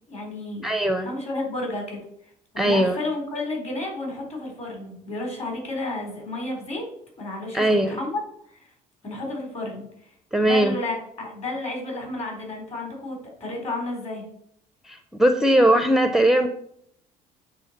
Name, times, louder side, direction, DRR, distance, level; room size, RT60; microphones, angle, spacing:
voice 1, 0.1-0.7 1.0-2.0 2.5-6.9 7.2-8.2 8.5-8.6 9.0-9.9 10.4-14.2, left 2 dB, 40° left, 1 dB, 3.9 m, -31 dB
voice 2, 0.6-1.1 2.6-3.0 7.5-8.0 10.3-10.7 14.8-16.5, right 1 dB, ahead, 7 dB, 0.5 m, -20 dB
8.3 x 4.1 x 6.6 m, 0.69 s
cardioid pair, 110°, 17 cm